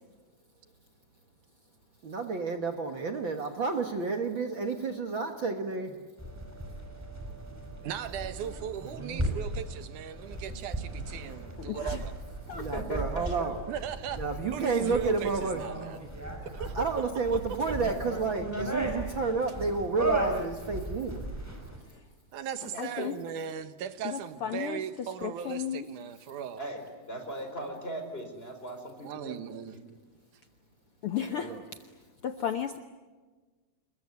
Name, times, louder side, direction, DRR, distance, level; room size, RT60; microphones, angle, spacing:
voice 1, 2.0-6.0 12.5-13.6 14.1-15.6 16.7-21.3 31.3-31.6, right 4 dB, 45° right, 5 dB, 1.9 m, -30 dB
sound 1, 6.2-21.8, right 1 dB, 5° right, 4.9 m, -36 dB
voice 2, 7.8-12.1 13.7-14.2 14.5-16.0 16.5-16.7 22.3-26.6 29.0-29.7, right 9 dB, 90° right, 11 dB, 2.8 m, -38 dB
voice 3, 11.6-12.0 12.5-12.7 21.8-22.0 22.6-23.2 24.0-25.9 31.0-31.6 32.2-32.8, left 9 dB, 65° left, 8 dB, 1.5 m, -34 dB
voice 4, 12.4-13.5 18.5-18.6 22.7-23.1 26.6-29.8, right 1 dB, 20° left, 5 dB, 4.4 m, -39 dB
28.0 x 21.5 x 9.6 m, 1.3 s
omnidirectional pair, 3.5 m